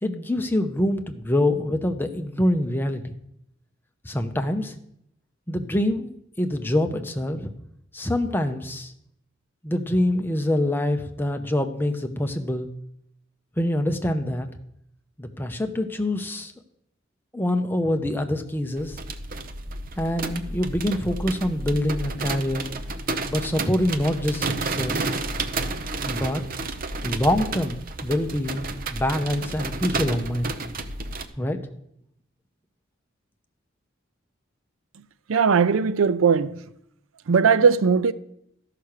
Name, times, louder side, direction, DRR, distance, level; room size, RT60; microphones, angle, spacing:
voice 1, 0.0-3.1 4.0-4.7 5.5-7.5 7.9-8.9 9.6-12.7 13.6-14.5 15.2-16.5 17.3-19.0 20.0-22.7 23.3-25.1 26.0-26.4 27.0-30.5 31.4-31.6, left 1 dB, 10° left, 0.7 m, -25 dB
sound 1, 18.8-31.3, right 3 dB, 45° right, 0.7 m, -31 dB
voice 2, 35.3-36.6 37.3-38.1, right 6 dB, 80° right, 0.5 m, -19 dB
13.0 x 5.8 x 6.6 m
head